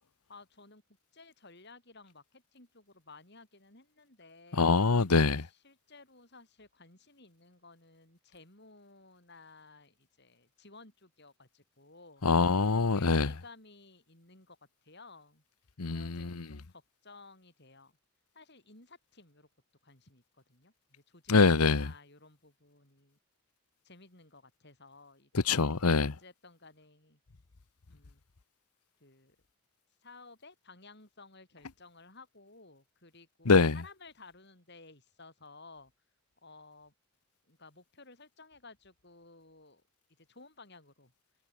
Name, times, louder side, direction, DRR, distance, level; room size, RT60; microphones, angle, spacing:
voice 1, 0.3-0.8 1.1-4.9 5.3-12.2 12.6-14.6 14.8-15.4 15.9-17.9 18.3-19.5 19.8-23.2 23.8-25.6 26.0-27.2 27.9-28.2 29.0-29.4 30.0-35.9 36.4-36.9 37.5-39.8 40.2-41.1, left 3 dB, 50° left, 6.3 m, -56 dB
voice 2, 4.5-5.4 12.2-13.3 15.8-16.4 21.3-21.9 25.3-26.1 33.4-33.8, left 4 dB, 90° left, 1.0 m, -24 dB
head